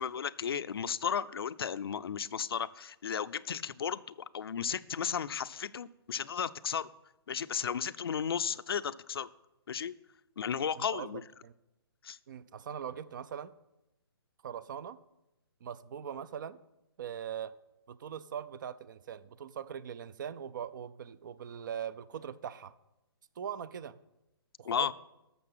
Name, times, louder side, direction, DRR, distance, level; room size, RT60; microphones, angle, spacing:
voice 1, 0.0-4.0 4.3-6.9 7.3-9.3 9.7-9.9 10.4-11.2 12.0-12.2 24.6-24.9, left 7 dB, 70° left, 15 dB, 0.5 m, -34 dB
voice 2, 10.8-11.1 11.4-11.5 12.3-13.5 14.4-15.0 15.6-16.6 17.0-17.5 17.9-22.7 23.4-24.0 24.6-24.9, right 8 dB, 50° right, 18 dB, 0.6 m, -41 dB
12.5 x 6.8 x 6.1 m, 0.93 s
hypercardioid pair, 135°, 13 cm